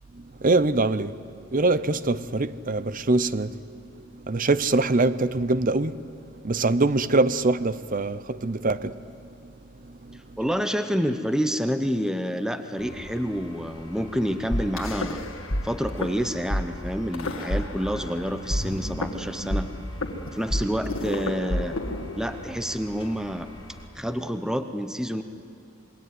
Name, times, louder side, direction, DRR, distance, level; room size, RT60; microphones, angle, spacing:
voice 1, 0.1-1.1 1.5-3.6 4.2-6.1 6.4-9.0 9.4-9.5 9.8-10.2, right 2 dB, 40° right, 0.7 m, -24 dB
voice 2, 10.4-15.2 15.6-19.7 20.3-21.8 22.2-23.5 23.9-25.2, equal, 5° right, 0.8 m, -28 dB
sound 1, 12.8-23.9, left 1 dB, 25° left, 2.7 m, -44 dB
sound 2, 14.5-15.6 15.9-16.1 16.5-16.6 17.1-18.1 18.5-22.5, left 1 dB, 70° left, 2.1 m, -28 dB
27.0 x 22.0 x 9.4 m
head